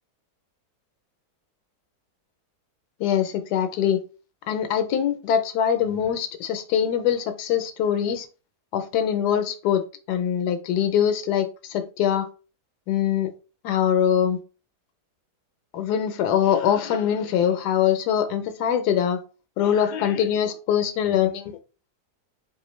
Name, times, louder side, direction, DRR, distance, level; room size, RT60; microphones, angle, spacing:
voice 1, 3.0-4.0 4.5-8.3 8.7-12.3 12.9-13.3 13.6-14.4 15.7-19.2 19.6-21.5, left 9 dB, 80° left, 1.1 m, -23 dB
4.2 x 2.4 x 3.0 m
omnidirectional pair, 1.7 m